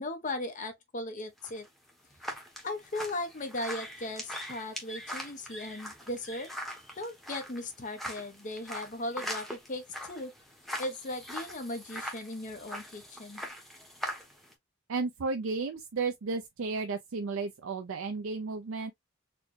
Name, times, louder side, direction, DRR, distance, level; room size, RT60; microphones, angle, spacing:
voice 1, 0.0-1.7 2.6-6.5 7.0-10.3 10.8-13.4, left 1 dB, 35° left, 0.7 m, -37 dB
sound 1, 1.4-14.5, equal, ahead, 0.9 m, -42 dB
voice 2, 14.9-18.9, right 4 dB, 70° right, 0.5 m, -33 dB
4.2 x 2.1 x 3.1 m
head